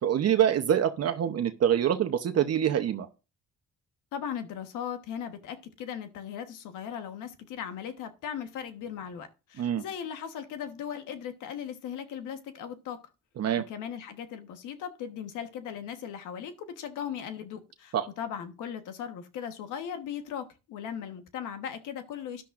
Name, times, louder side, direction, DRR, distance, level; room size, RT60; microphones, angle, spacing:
voice 1, 0.0-3.1 9.6-9.8 13.4-13.6 17.9-18.1, right 9 dB, 55° right, 0.9 m, -25 dB
voice 2, 4.1-13.0 13.6-22.4, left 8 dB, 90° left, 1.3 m, -38 dB
13.0 x 10.0 x 2.5 m
cardioid pair, 90°, 30 cm